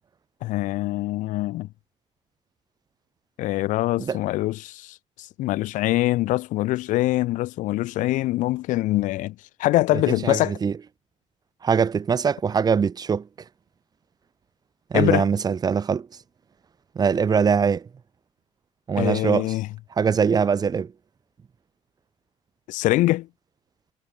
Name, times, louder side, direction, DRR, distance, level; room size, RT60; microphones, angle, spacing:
voice 1, 0.4-1.7 3.4-9.3 9.6-10.6 14.9-15.3 19.0-19.7 22.7-23.3, left 17 dB, 85° left, 0.7 m, -24 dB
voice 2, 9.9-10.7 11.6-13.3 14.9-16.1 16.9-17.9 18.9-19.5 20.0-20.9, right 6 dB, 30° right, 1.1 m, -22 dB
cardioid pair, 130°, 13 cm